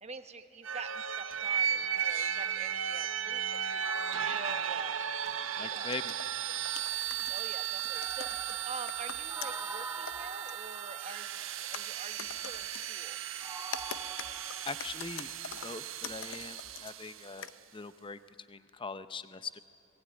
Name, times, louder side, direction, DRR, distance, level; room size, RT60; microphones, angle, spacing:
voice 1, 0.0-5.0 5.5-6.0 7.3-8.3 8.7-11.4 11.7-13.2, right 4 dB, 35° right, 8 dB, 1.3 m, -46 dB
sound 1, 0.6-17.4, right 9 dB, 80° right, 0.9 m, -36 dB
sound 2, 3.0-3.1 3.5-3.7 4.0-4.2 5.2-9.6 10.0-10.9 11.4-12.9 13.6-16.9 17.2-17.5, left 7 dB, 75° left, 0.8 m, -45 dB
sound 3, 3.8-6.6 7.9-11.7 13.4-14.8, right 2 dB, 15° right, 1.2 m, -46 dB
voice 2, 5.6-6.1 14.6-15.3 15.6-17.5 17.7-18.2 18.5-19.6, left 4 dB, 25° left, 12 dB, 0.6 m, -41 dB
27.5 x 20.0 x 8.9 m, 2.7 s
head